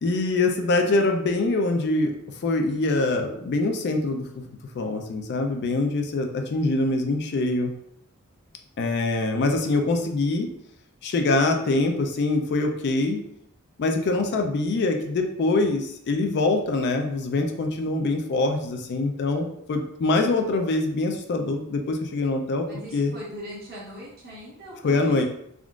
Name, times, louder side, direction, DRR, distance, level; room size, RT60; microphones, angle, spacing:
voice 1, 0.0-2.1 2.4-4.2 4.8-7.7 8.8-10.5 11.0-13.2 13.8-22.6 22.9-23.1 24.8-25.2, left 2 dB, 50° left, 4 dB, 0.4 m, -24 dB
voice 2, 22.7-25.2, equal, 45° right, -6 dB, 1.2 m, -40 dB
3.6 x 2.4 x 2.3 m, 0.72 s
head